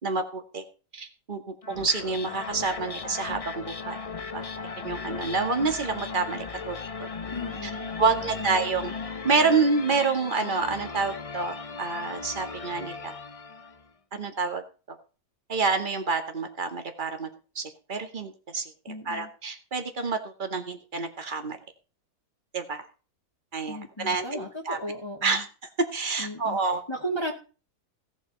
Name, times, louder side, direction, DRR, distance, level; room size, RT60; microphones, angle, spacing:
voice 1, 0.0-0.7 0.9-4.0 4.3-7.1 7.6-7.7 8.0-8.9 9.2-13.1 14.1-15.0 15.5-17.3 17.6-21.6 22.5-22.8 23.5-24.8 25.2-25.5 25.9-26.8, right 4 dB, 30° right, 5 dB, 2.1 m, -28 dB
sound 1, 1.6-13.8, left 5 dB, 35° left, 0.6 m, -37 dB
voice 2, 7.3-8.6 18.9-19.3 23.7-25.4 26.2-26.6 26.9-27.3, equal, 15° left, 0 dB, 2.1 m, -35 dB
17.5 x 8.3 x 4.2 m, 0.35 s
omnidirectional pair, 1.6 m